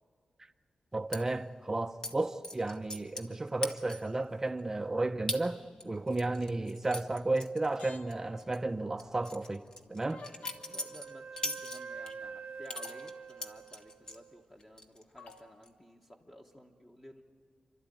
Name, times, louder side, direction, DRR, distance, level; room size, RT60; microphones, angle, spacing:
voice 1, 0.9-10.2, right 2 dB, 20° right, 0.6 m, -33 dB
sound 1, 1.1-1.2 2.0-2.1 2.4-3.3 3.6-4.2 4.6-4.7 5.3-5.4 5.8-8.1 8.4-8.6 9.0-12.1 12.7-14.2 14.6-15.0 15.3-15.7, left 1 dB, 35° left, 1.3 m, -40 dB
sound 2, 7.6-8.6 10.1-10.9 12.2-12.3 12.8-13.1 15.2-15.5, left 4 dB, 80° left, 1.2 m, -52 dB
Wind instrument woodwind instrument, 10.3-14.5, right 5 dB, 90° right, 0.9 m, -46 dB
voice 2, 10.7-17.2, equal, 15° left, 1.1 m, -54 dB
29.0 x 12.5 x 9.2 m
wide cardioid pair, 145°, 2 cm